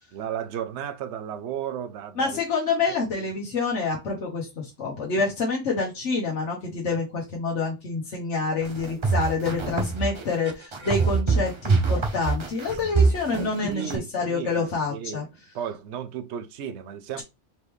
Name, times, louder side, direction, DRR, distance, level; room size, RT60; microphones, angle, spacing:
voice 1, 0.1-2.4 3.2-3.3 13.6-15.3 15.5-17.2, right 9 dB, 75° right, 0.9 m, -34 dB
voice 2, 2.2-15.2, left 4 dB, 90° left, 1.3 m, -27 dB
sound 1, 8.6-14.0, right 4 dB, 30° right, 0.6 m, -23 dB
4.3 x 3.4 x 3.1 m
omnidirectional pair, 1.2 m